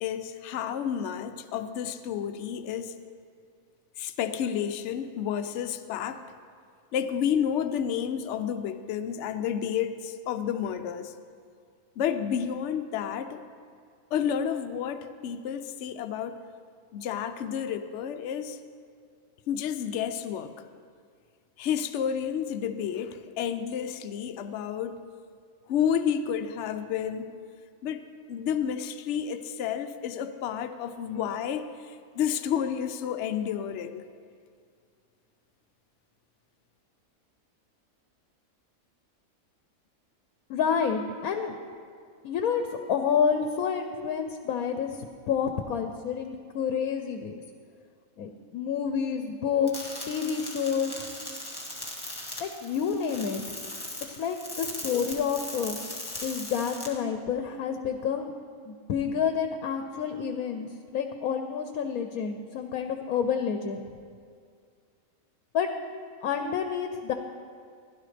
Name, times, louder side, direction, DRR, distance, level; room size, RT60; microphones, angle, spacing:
voice 1, 0.0-2.9 4.0-6.2 6.9-11.1 12.0-13.4 14.1-16.4 16.9-18.6 19.5-20.5 21.6-25.0 25.7-27.3 27.8-34.0, left 8 dB, 65° left, 9 dB, 0.8 m, -30 dB
voice 2, 40.5-41.5 42.2-42.6 42.9-45.0 45.3-47.3 48.2-50.9 52.4-53.4 54.1-55.8 56.2-58.3 58.7-63.8 65.5-65.7 66.2-67.1, left 7 dB, 90° left, 6 dB, 1.1 m, -29 dB
sound 1, 49.7-56.9, left 1 dB, 15° left, 1.5 m, -39 dB
15.5 x 11.5 x 3.3 m, 2.2 s
omnidirectional pair, 1.5 m